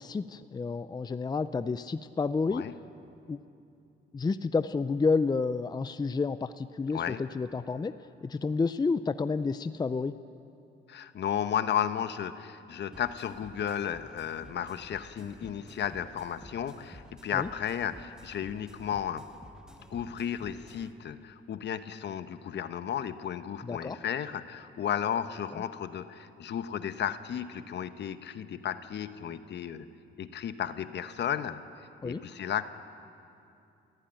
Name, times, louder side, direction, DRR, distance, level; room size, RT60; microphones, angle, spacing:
voice 1, 0.0-2.6 3.3-3.4 4.1-7.9 8.2-10.1 17.3-17.5 23.6-24.0 25.5-25.6 32.0-32.2, left 4 dB, 20° left, 12 dB, 0.5 m, -30 dB
voice 2, 10.9-19.3 19.9-29.9 30.2-31.6 32.0-32.6, left 9 dB, 60° left, 11 dB, 1.1 m, -34 dB
sound 1, 12.9-20.9, equal, 5° right, 1.5 m, -52 dB
30.0 x 14.5 x 9.0 m, 2.7 s
cardioid pair, 90°, 20 cm